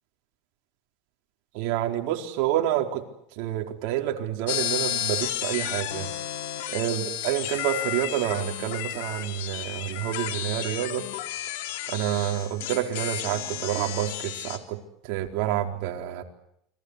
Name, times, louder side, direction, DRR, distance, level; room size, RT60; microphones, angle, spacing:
voice 1, 1.5-3.0 3.4-6.1 6.7-11.0 11.9-14.8 15.1-16.2, right 12 dB, 65° right, 3 dB, 4.3 m, -28 dB
sound 1, 4.5-14.6, left 13 dB, 85° left, 3.4 m, -32 dB
29.5 x 23.5 x 8.3 m, 0.75 s
supercardioid pair, 135°, 0 cm